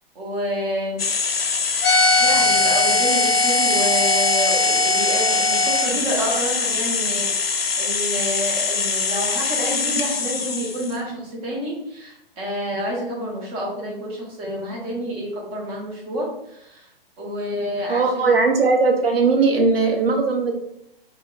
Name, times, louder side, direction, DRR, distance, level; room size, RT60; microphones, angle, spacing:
voice 1, 0.1-1.1 2.2-16.9 17.2-18.3, equal, 20° right, -3 dB, 0.8 m, -29 dB
sound 1, 1.0-11.0, left 5 dB, 85° left, 0.5 m, -23 dB
sound 2, 1.8-5.9, left 2 dB, 15° left, 0.7 m, -20 dB
voice 2, 17.9-20.5, right 4 dB, 75° right, 3 dB, 0.7 m, -18 dB
2.2 x 2.2 x 3.7 m, 0.78 s
figure-of-eight pair, 125°, 29 cm